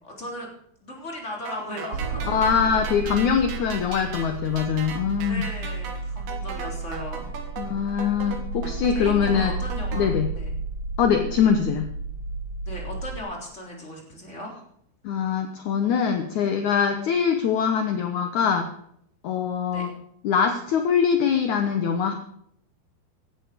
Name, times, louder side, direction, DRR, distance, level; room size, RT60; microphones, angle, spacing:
voice 1, 0.0-0.5 0.8-2.4 5.3-7.3 8.9-10.5 12.7-14.5 19.7-19.9, left 1 dB, 15° left, 0 dB, 3.6 m, -37 dB
sound 1, 1.5-10.0, right 7 dB, 80° right, 4.2 m, -38 dB
sound 2, 1.9-13.2, right 3 dB, 55° right, 2.1 m, -32 dB
voice 2, 2.3-5.4 7.6-9.5 9.9-10.3 11.0-11.9 15.0-18.7 19.2-19.9 20.2-22.1, left 7 dB, 75° left, 6 dB, 1.8 m, -23 dB
16.0 x 12.5 x 5.2 m, 0.68 s
omnidirectional pair, 5.0 m